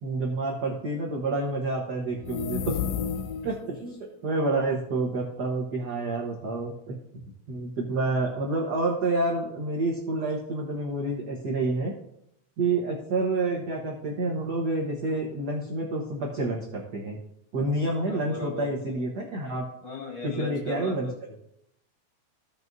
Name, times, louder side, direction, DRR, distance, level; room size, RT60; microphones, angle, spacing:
voice 1, 0.0-2.8 3.4-6.9 7.5-11.9 12.6-17.2 17.5-19.6 20.2-21.1, right 2 dB, 55° right, -1 dB, 1.2 m, -28 dB
sound 1, 2.1-3.7, left 7 dB, 80° left, 1.4 m, -31 dB
voice 2, 18.0-18.6 19.8-21.1, left 3 dB, 60° left, -4 dB, 4.2 m, -37 dB
16.0 x 6.1 x 2.7 m, 0.76 s
omnidirectional pair, 3.3 m